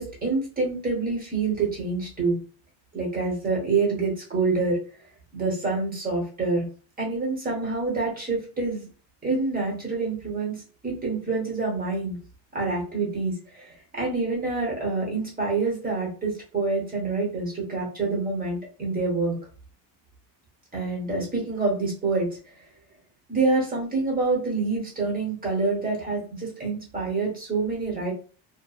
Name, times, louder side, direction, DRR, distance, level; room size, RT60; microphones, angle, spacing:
voice 1, 0.0-2.3 2.9-4.8 5.3-6.6 7.0-8.8 9.2-12.2 12.5-19.4 20.7-22.4 23.3-28.1, right 3 dB, 20° right, -2 dB, 0.8 m, -27 dB
2.5 x 2.3 x 2.3 m, 0.38 s
cardioid pair, 160°, 43 cm